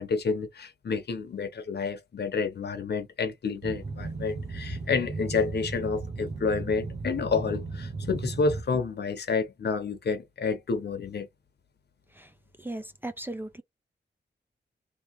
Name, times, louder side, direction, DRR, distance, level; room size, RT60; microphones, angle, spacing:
voice 1, 0.0-11.3, left 4 dB, 65° left, 1.0 m, -29 dB
Boat Water vehicle, 3.6-8.6, right 3 dB, 40° right, 0.9 m, -36 dB
voice 2, 12.6-13.6, right 1 dB, 10° right, 0.4 m, -37 dB
3.2 x 3.0 x 3.1 m
wide cardioid pair, 125°, 18 cm